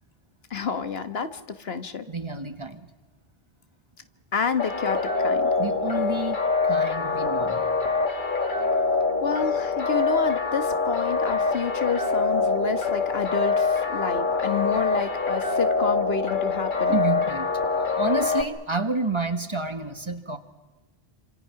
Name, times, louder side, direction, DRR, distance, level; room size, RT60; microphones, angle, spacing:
voice 1, 0.5-2.0 4.3-5.5 9.2-17.0, left 5 dB, 70° left, 10 dB, 1.5 m, -29 dB
voice 2, 2.1-2.8 5.6-6.4 6.6-7.7 16.9-17.5 18.0-20.4, right 2 dB, 30° right, 8 dB, 1.5 m, -29 dB
sound 1, 4.6-18.4, left 4 dB, 50° left, 1.8 m, -24 dB
28.0 x 26.5 x 5.8 m, 1.2 s
omnidirectional pair, 1.1 m